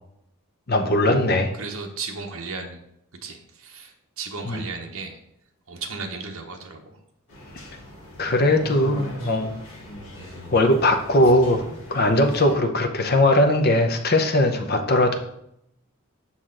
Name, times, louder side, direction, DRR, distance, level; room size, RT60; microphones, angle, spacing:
voice 1, 0.7-1.5 4.4-4.6 8.2-9.6 10.5-11.6 11.9-15.2, left 1 dB, 45° left, 5 dB, 0.7 m, -19 dB
voice 2, 1.5-2.8 3.2-5.2 5.7-7.0, right 4 dB, 65° right, 2 dB, 0.8 m, -35 dB
sound 1, 7.3-12.6, equal, 65° left, 2.4 m, -39 dB
6.4 x 5.7 x 3.8 m, 0.77 s
head